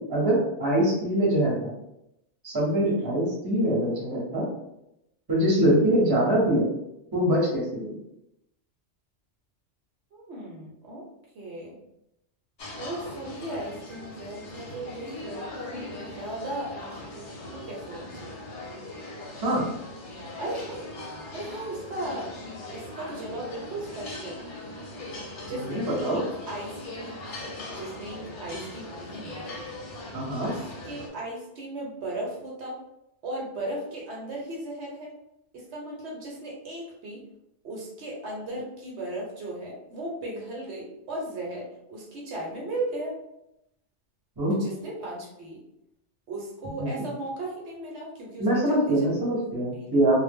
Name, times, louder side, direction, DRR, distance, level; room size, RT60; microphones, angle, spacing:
voice 1, 0.1-1.7 2.4-4.4 5.3-6.7 7.1-8.0 19.4-19.7 25.5-26.2 30.1-30.5 44.4-44.5 46.8-47.0 48.4-50.2, right 1 dB, 20° right, -5 dB, 0.7 m, -24 dB
voice 2, 10.1-11.1 11.3-11.8 12.8-17.3 17.5-18.3 20.4-20.9 21.3-22.3 22.7-24.4 25.5-27.2 27.7-29.5 30.4-32.8 33.2-35.1 35.5-37.2 37.6-43.2 44.5-45.6 46.3-49.0 49.7-50.0, right 1 dB, 70° right, -2 dB, 0.9 m, -36 dB
sound 1, 12.6-31.1, left 1 dB, 55° left, 0.7 m, -40 dB
2.0 x 2.0 x 3.4 m, 0.85 s
omnidirectional pair, 1.2 m